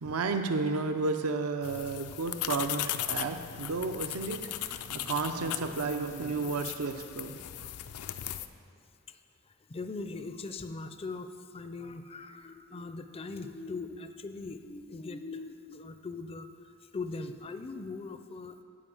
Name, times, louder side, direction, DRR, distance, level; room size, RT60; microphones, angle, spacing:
voice 1, 0.0-7.7, right 4 dB, 70° right, 7 dB, 0.6 m, -32 dB
sound 1, 1.6-8.5, left 12 dB, 80° left, 0.5 m, -38 dB
voice 2, 8.0-8.5 9.1-9.2 9.7-16.5 16.9-18.6, left 3 dB, 25° left, 9 dB, 0.4 m, -40 dB
12.0 x 5.0 x 8.6 m, 2.4 s
head